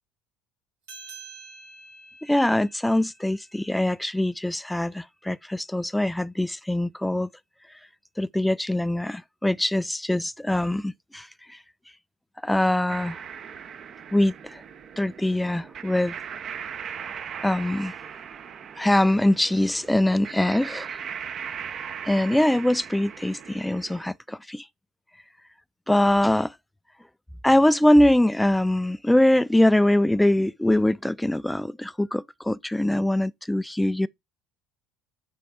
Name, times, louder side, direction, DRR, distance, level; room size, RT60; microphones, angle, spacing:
sound 1, 0.8-5.7, right 4 dB, 75° right, 2.2 m, -49 dB
voice 1, 2.3-7.3 8.2-11.3 12.4-13.2 14.1-14.3 15.0-16.1 17.4-17.9 18.8-20.9 22.1-24.6 25.9-26.5 27.4-34.1, left 1 dB, 5° left, 0.3 m, -22 dB
sound 2, 12.9-24.1, right 7 dB, 45° right, 0.7 m, -39 dB
5.8 x 3.4 x 4.8 m
hypercardioid pair, 65°, 0 cm